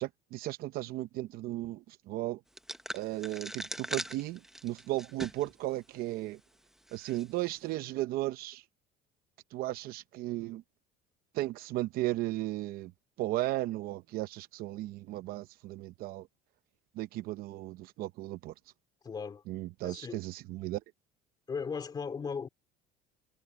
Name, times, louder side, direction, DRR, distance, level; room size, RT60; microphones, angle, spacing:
voice 1, 0.0-2.4 2.9-6.4 6.9-8.6 9.5-10.6 11.3-12.9 13.2-16.3 17.0-18.5 19.5-20.8, right 16 dB, 55° right, 0.7 m, -35 dB
sound 1, 2.6-5.5 6.0-6.1 6.9-7.2, right 1 dB, ahead, 1.0 m, -41 dB
voice 2, 19.0-19.4 19.8-20.2 21.5-22.5, left 5 dB, 20° left, 2.4 m, -37 dB
cardioid pair, 150°, 18 cm